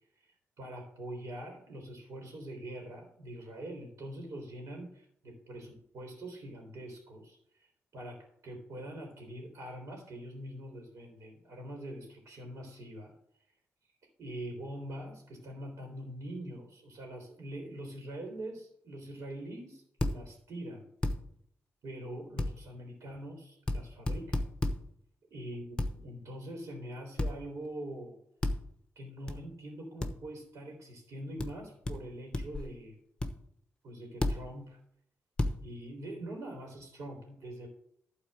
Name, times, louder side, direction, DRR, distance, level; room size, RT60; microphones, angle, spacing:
voice 1, 0.6-7.7 7.9-13.1 14.2-20.9 21.8-24.4 25.3-28.2 28.9-33.0 33.8-34.8 35.6-37.7, right 1 dB, 70° right, 0 dB, 3.1 m, -44 dB
sound 1, 20.0-20.2 21.0-21.2 22.4-22.5 23.7-23.8 24.1-24.8 25.8-25.9 27.2-27.4 28.4-28.6 29.3-29.4 30.0-30.1 31.4-31.5 31.9-32.0 32.3-32.7 33.2-33.3 34.2-34.4 35.4-35.6, left 2 dB, 20° left, 1.0 m, -30 dB
12.0 x 4.2 x 7.6 m, 0.70 s
cardioid pair, 80°, 5 cm